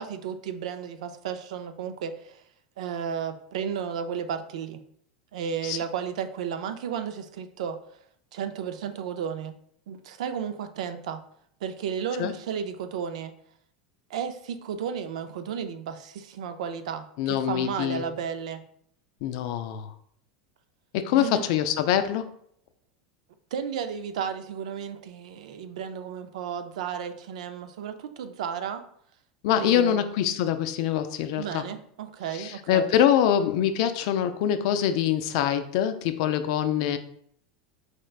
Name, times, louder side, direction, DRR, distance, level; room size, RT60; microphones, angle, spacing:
voice 1, 0.0-2.4 2.8-4.8 5.3-7.8 8.3-9.5 9.9-11.2 11.6-13.3 14.1-18.6 21.1-21.4 23.5-28.8 29.6-30.0 31.4-32.9, right 7 dB, 85° right, 9 dB, 0.4 m, -33 dB
voice 2, 17.2-18.0 19.2-19.9 20.9-22.3 29.4-31.7 32.3-37.0, left 10 dB, 60° left, 9 dB, 0.4 m, -24 dB
4.3 x 3.2 x 2.4 m, 0.66 s
supercardioid pair, 145°, 4 cm